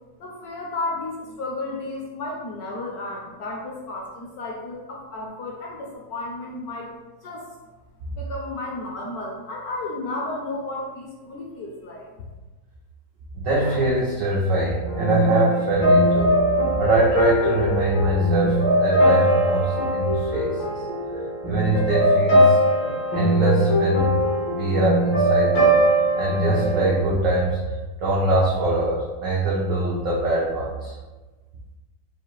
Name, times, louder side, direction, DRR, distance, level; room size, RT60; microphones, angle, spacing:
voice 1, 0.2-6.9 7.2-7.5 8.2-12.1, left 2 dB, 65° left, -2 dB, 1.0 m, -33 dB
voice 2, 13.3-16.4 16.8-20.8 21.5-22.6 23.1-24.2 24.5-25.7 26.1-27.6 28.0-30.9, right 2 dB, 90° right, -4 dB, 0.7 m, -23 dB
sound 1, 14.9-27.0, equal, 85° left, 2.0 m, -21 dB
4.7 x 2.4 x 3.0 m, 1.2 s
omnidirectional pair, 2.1 m